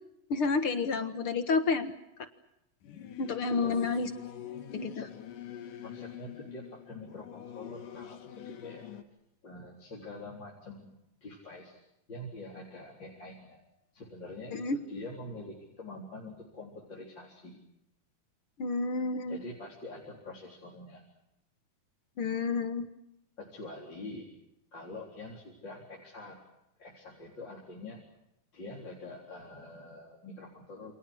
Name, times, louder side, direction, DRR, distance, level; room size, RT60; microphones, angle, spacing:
voice 1, 0.3-1.9 3.2-4.1 4.7-4.9 14.5-14.8 18.6-19.4 22.2-22.9, left 4 dB, 50° left, 9 dB, 2.0 m, -29 dB
Singing / Musical instrument, 2.8-9.0, left 10 dB, 90° left, 3.3 m, -45 dB
voice 2, 3.5-3.8 4.9-5.2 5.8-8.9 9.4-11.8 12.1-13.6 13.9-17.6 19.3-21.1 23.4-24.3 24.7-26.4 26.8-28.0 28.5-30.9, left 2 dB, 35° left, -2 dB, 4.5 m, -45 dB
29.0 x 27.0 x 6.3 m, 0.84 s
omnidirectional pair, 3.6 m